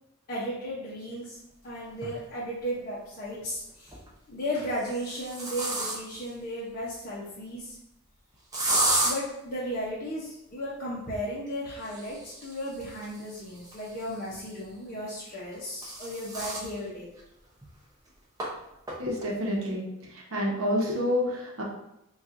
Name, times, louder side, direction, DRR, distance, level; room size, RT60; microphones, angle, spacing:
voice 1, 0.3-1.4 1.6-4.0 4.3-7.8 9.0-17.1, equal, 40° left, -7 dB, 0.6 m, -35 dB
sound 1, 2.1-2.2 3.7-4.1 4.7-6.3 8.5-9.1 11.7-14.4 15.4-16.7 17.2-17.3 17.6-17.7 18.4-18.5 18.9-19.3, right 2 dB, 15° right, 0.6 m, -32 dB
voice 2, 19.0-19.9 20.3-21.6, left 1 dB, 65° right, -2 dB, 0.8 m, -28 dB
4.2 x 2.3 x 2.5 m, 0.84 s
head